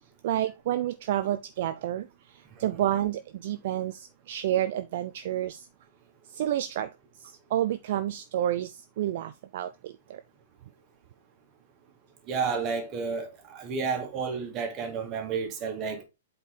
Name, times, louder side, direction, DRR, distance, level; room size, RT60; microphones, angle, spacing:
voice 1, 0.2-5.7 6.3-6.9 7.2-10.2, right 12 dB, 50° right, 0.5 m, -30 dB
voice 2, 12.3-16.0, right 5 dB, 30° right, 2.1 m, -31 dB
8.0 x 4.4 x 3.9 m
figure-of-eight pair, 110°, 0 cm